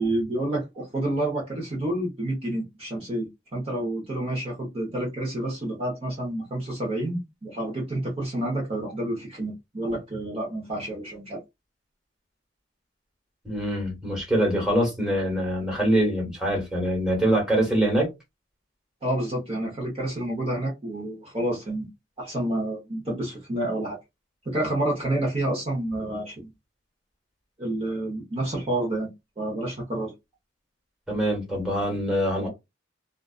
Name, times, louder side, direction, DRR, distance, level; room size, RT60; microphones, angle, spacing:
voice 1, 0.0-11.4 19.0-21.9 22.2-24.0 24.5-26.5 27.6-29.1 29.4-30.1, right 1 dB, 30° right, 0.8 m, -29 dB
voice 2, 13.4-18.1 31.1-32.5, right 1 dB, 5° right, 1.2 m, -24 dB
2.4 x 2.4 x 2.3 m
head